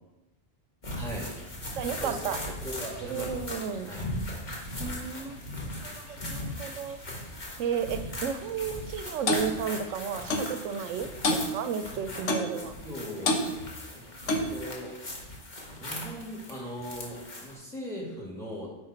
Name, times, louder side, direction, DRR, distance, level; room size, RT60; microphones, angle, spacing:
sound 1, 0.8-17.5, left 1 dB, 40° left, 1.6 m, -39 dB
voice 1, 0.9-1.7 2.0-3.5 3.9-4.1 12.2-12.5 12.8-13.4 13.9-14.0 14.5-14.9 15.8-18.7, equal, ahead, -2 dB, 2.2 m, -39 dB
voice 2, 1.8-2.4 3.1-3.9 4.8-7.0 7.6-12.7, right 7 dB, 90° right, 10 dB, 0.9 m, -33 dB
Clock, 9.3-9.5 10.3-10.5 11.2-11.5 12.3-12.5 13.2-13.5 14.3-14.5, left 2 dB, 80° left, 1.3 m, -26 dB
9.5 x 5.1 x 4.4 m, 1.0 s
omnidirectional pair, 1.2 m